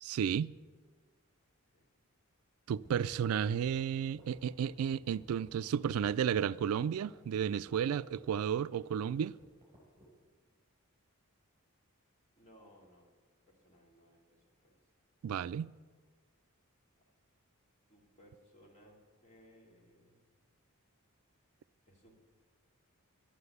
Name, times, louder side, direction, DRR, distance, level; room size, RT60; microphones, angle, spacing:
voice 1, 0.0-0.5 2.7-9.3 15.2-15.7, right 8 dB, 75° right, 0.3 m, -33 dB
sound 1, 2.8-10.1, equal, 25° right, 5.2 m, -58 dB
voice 2, 12.3-13.1 13.5-14.7 17.9-20.2 21.9-22.2, equal, 30° left, 3.1 m, -62 dB
11.5 x 9.8 x 8.1 m
head